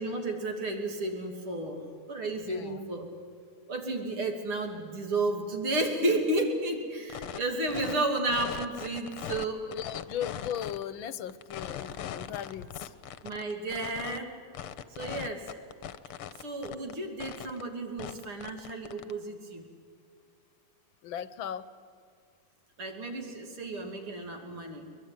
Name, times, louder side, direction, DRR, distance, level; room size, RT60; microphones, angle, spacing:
voice 1, 0.0-1.8 2.1-3.1 3.7-9.7 13.2-14.3 14.9-15.6 16.4-19.7 22.8-24.9, right 2 dB, 75° right, 3 dB, 3.8 m, -32 dB
voice 2, 2.5-2.8 9.7-12.9 21.0-21.7, left 9 dB, 70° left, 15 dB, 1.5 m, -37 dB
sound 1, 7.1-7.4 7.7-9.5 9.7-10.8 11.3-14.2 14.6-16.9 17.2-17.6 18.0-19.1, left 10 dB, 90° left, 1.8 m, -39 dB
23.0 x 21.5 x 9.4 m, 2.2 s
omnidirectional pair, 2.4 m